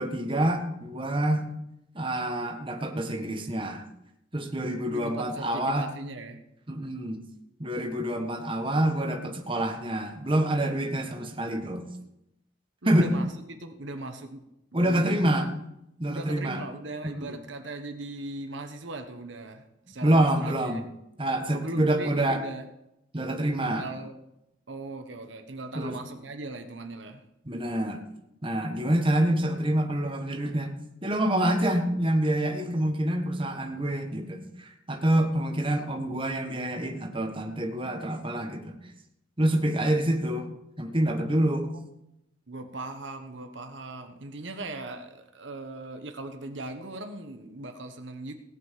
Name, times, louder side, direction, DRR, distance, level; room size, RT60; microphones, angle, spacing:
voice 1, 0.0-1.4 1.9-3.8 4.3-5.9 6.7-7.2 7.6-11.9 12.8-13.1 14.7-15.5 16.0-16.6 17.0-17.4 20.0-20.8 21.2-22.4 23.1-23.8 25.7-26.0 27.4-28.1 28.4-30.7 31.0-38.8 39.4-40.5 40.8-41.7, right 1 dB, 25° right, 3 dB, 1.4 m, -27 dB
voice 2, 4.9-6.4 12.8-14.4 14.7-15.6 16.1-20.9 21.5-22.7 23.6-24.1 24.7-27.2 41.3-41.4 42.5-48.3, right 2 dB, 70° right, 6 dB, 1.2 m, -39 dB
17.5 x 6.0 x 7.5 m, 0.85 s
head